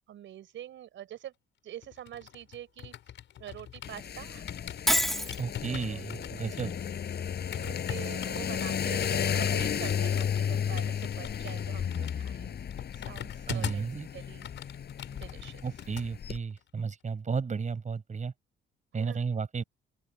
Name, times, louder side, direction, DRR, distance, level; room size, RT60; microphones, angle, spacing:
voice 1, 0.0-1.3 1.6-2.9 3.4-4.4 5.7-6.0 7.6-12.5 12.9-13.8 14.1-14.5 15.1-15.9 18.9-19.3, right 11 dB, 75° right, 5.9 m, -45 dB
sound 1, 1.8-4.1 4.5-14.0 14.2-16.1 16.4-16.6, left 10 dB, 70° left, 5.6 m, -43 dB
sound 2, 3.8-16.4, left 8 dB, 55° left, 5.8 m, -33 dB
Shatter, 4.9-5.4, equal, ahead, 1.5 m, -26 dB
voice 2, 5.4-6.7 13.5-14.1 15.6-18.3 18.9-19.6, right 5 dB, 35° right, 7.5 m, -33 dB
open air
cardioid pair, 90°, 20 cm